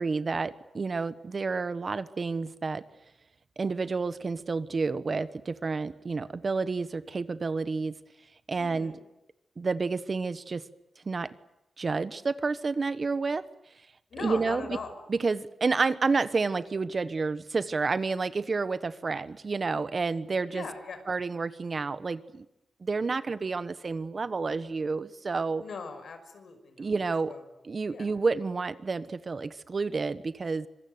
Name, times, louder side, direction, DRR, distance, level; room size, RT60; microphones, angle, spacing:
voice 1, 0.0-2.8 3.6-7.9 8.5-8.9 9.6-10.6 11.0-11.3 11.8-13.4 14.2-14.8 15.1-20.6 21.1-22.4 22.8-25.6 26.8-27.3 27.6-30.7, right 4 dB, 40° right, 14 dB, 1.3 m, -30 dB
voice 2, 8.6-9.0 14.1-14.9 20.5-21.0 25.6-26.9 27.3-27.4 27.9-28.1, left 4 dB, 75° left, 8 dB, 5.5 m, -40 dB
25.5 x 23.5 x 9.5 m, 0.86 s
wide cardioid pair, 105°, 0 cm